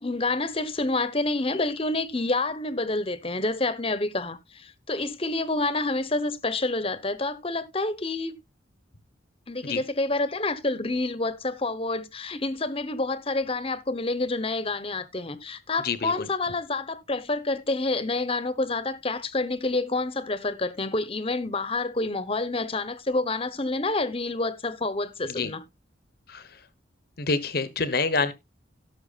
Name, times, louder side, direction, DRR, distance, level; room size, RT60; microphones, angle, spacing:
voice 1, 0.0-8.4 9.5-25.6, left 2 dB, 30° left, 1.0 m, -28 dB
voice 2, 15.8-16.3 25.3-25.5 26.3-26.4 27.2-28.3, left 4 dB, 55° left, 1.0 m, -27 dB
17.5 x 6.1 x 2.4 m
head